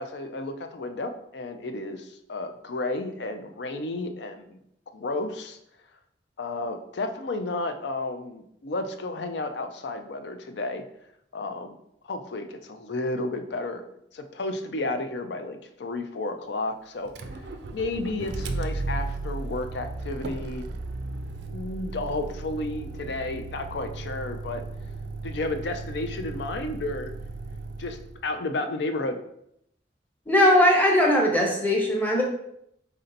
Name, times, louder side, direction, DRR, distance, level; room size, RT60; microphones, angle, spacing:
voice 1, 0.0-4.6 4.9-5.6 6.4-10.8 11.3-11.8 12.0-13.8 14.1-17.1 17.7-20.7 21.5-24.6 25.2-27.1 27.8-29.2, left 2 dB, 70° left, 7 dB, 0.5 m, -32 dB
Motor vehicle (road), 17.1-28.2, right 3 dB, 65° right, 0.4 m, -35 dB
voice 2, 30.3-32.2, left 1 dB, 10° left, -2 dB, 0.8 m, -19 dB
4.3 x 2.7 x 3.9 m, 0.75 s
head